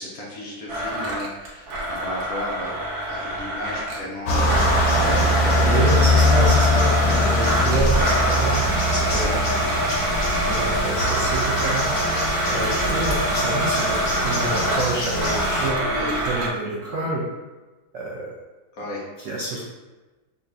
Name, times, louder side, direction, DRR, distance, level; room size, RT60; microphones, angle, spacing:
voice 1, 0.0-2.8 3.1-4.5 4.8-6.1 8.9-9.4 15.8-16.2 18.7-19.0 19.5-19.6, left 1 dB, 60° left, -5 dB, 1.0 m, -34 dB
Domestic sounds home sounds, 0.7-4.1 4.5-16.5, right 1 dB, 65° right, 1.2 m, -25 dB
sound 1, 4.2-15.7, left 1 dB, 85° left, 1.5 m, -22 dB
voice 2, 5.6-9.4 10.4-12.2 12.5-17.2 17.9-18.3 19.2-19.6, right 2 dB, 85° right, -4 dB, 0.6 m, -28 dB
5.1 x 2.3 x 2.5 m, 1.2 s
omnidirectional pair, 2.0 m